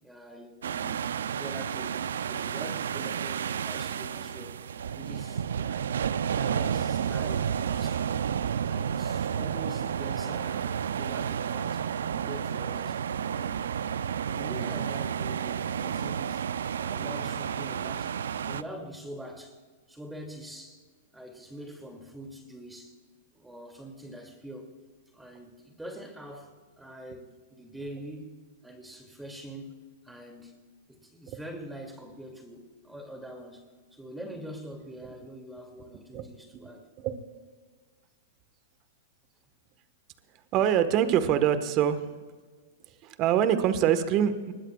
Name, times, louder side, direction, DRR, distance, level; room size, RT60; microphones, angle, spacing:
voice 1, 0.0-4.7 4.9-8.3 8.7-11.8 12.1-13.0 14.3-16.4 16.8-18.1 18.4-19.6 19.9-20.8 21.1-23.0 23.3-24.7 25.1-28.3 28.6-29.8 30.0-30.6 30.9-33.6 33.9-36.9, equal, 5° right, 3 dB, 2.6 m, -44 dB
sound 1, 0.6-18.6, right 8 dB, 80° right, 0.5 m, -31 dB
voice 2, 40.5-42.1 43.0-44.5, right 9 dB, 40° right, 10 dB, 1.4 m, -24 dB
24.0 x 21.0 x 2.4 m, 1.5 s
hypercardioid pair, 115°, 0 cm